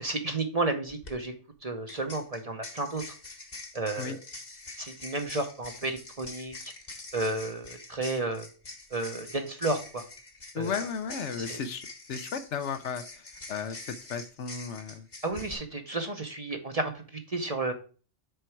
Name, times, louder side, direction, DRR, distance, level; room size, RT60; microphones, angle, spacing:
voice 1, 0.0-1.3 1.6-3.1 3.7-4.2 4.8-6.5 7.1-8.5 8.9-10.0 10.5-10.7 11.4-11.6 15.2-17.7, right 2 dB, 35° right, 5 dB, 0.8 m, -32 dB
sound 1, 0.9-1.1 1.9-15.5, left 2 dB, 35° left, 1.3 m, -45 dB
voice 2, 10.5-15.1, left 6 dB, 70° left, 10 dB, 1.0 m, -35 dB
6.8 x 4.5 x 4.5 m, 0.38 s
omnidirectional pair, 1.3 m